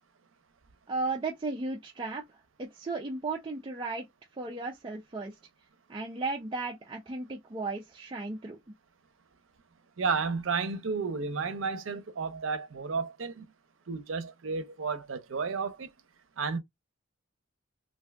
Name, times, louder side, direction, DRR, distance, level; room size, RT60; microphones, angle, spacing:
voice 1, 0.9-4.1 4.3-5.3 5.9-8.6, right 3 dB, 25° right, 0.4 m, -35 dB
voice 2, 10.0-13.5 13.9-15.9 16.4-16.6, right 5 dB, 80° right, 0.6 m, -32 dB
2.5 x 2.3 x 3.4 m
head